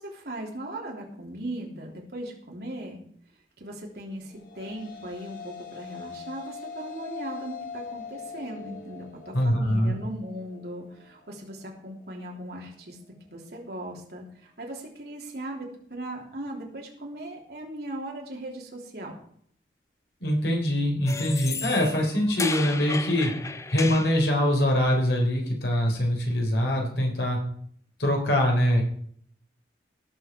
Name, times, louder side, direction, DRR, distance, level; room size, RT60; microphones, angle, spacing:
voice 1, 0.0-3.0 3.6-13.0 13.3-19.2, right 1 dB, 65° right, -1 dB, 3.2 m, -38 dB
sound 1, 4.2-12.7, left 6 dB, 50° left, 2.1 m, -43 dB
voice 2, 9.3-9.9 20.2-23.3 23.7-27.4 28.0-28.8, left 1 dB, 75° left, 0 dB, 3.9 m, -23 dB
sound 2, 21.1-24.2, left 4 dB, 15° left, 0.5 m, -34 dB
17.5 x 7.2 x 4.5 m, 0.63 s
head